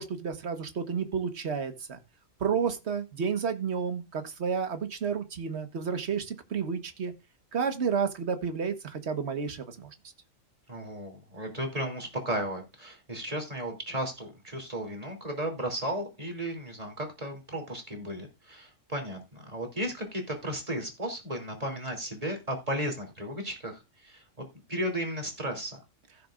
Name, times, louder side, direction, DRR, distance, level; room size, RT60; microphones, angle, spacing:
voice 1, 0.0-2.0 2.4-7.1 7.5-9.9, right 6 dB, 55° right, 8 dB, 1.6 m, -31 dB
voice 2, 10.7-25.8, right 1 dB, 25° right, 3 dB, 3.1 m, -35 dB
16.5 x 6.7 x 2.5 m, 0.25 s
omnidirectional pair, 1.4 m